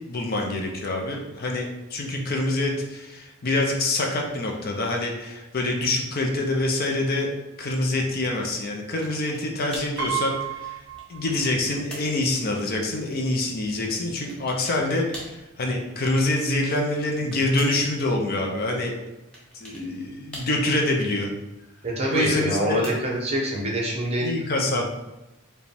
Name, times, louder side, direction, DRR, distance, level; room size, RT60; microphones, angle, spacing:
voice 1, 0.1-7.3 7.6-10.8 11.1-18.9 19.5-21.3 22.1-22.8 24.2-24.9, left 2 dB, 45° left, 1 dB, 0.5 m, -26 dB
sound 1, 9.0-9.5 9.7-10.0 10.7-11.5 11.9-12.2 14.3-14.8 15.1-15.4 16.8-17.9 19.3-19.9 20.3-20.9 22.3-23.3, equal, 5° left, 0.8 m, -42 dB
Piano, 10.0-11.8 12.1-12.2 13.4-13.5 13.8-14.0, right 10 dB, 65° right, 0.6 m, -32 dB
voice 2, 21.8-24.3 24.7-24.9, right 1 dB, 30° right, -3 dB, 0.9 m, -25 dB
4.8 x 2.2 x 3.3 m, 0.99 s
head